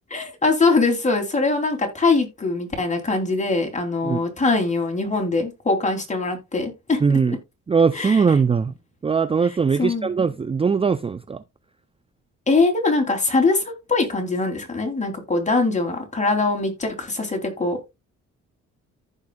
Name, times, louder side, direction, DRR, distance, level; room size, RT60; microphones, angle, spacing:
voice 1, 0.1-7.0 7.3-7.4 7.9-8.2 9.8-10.1 12.5-17.8, left 3 dB, 25° left, 3.2 m, -22 dB
voice 2, 7.0-7.4 7.7-8.7 9.0-11.4, right 5 dB, 20° right, 0.5 m, -20 dB
15.0 x 5.2 x 2.3 m
cardioid pair, 90°, 30 cm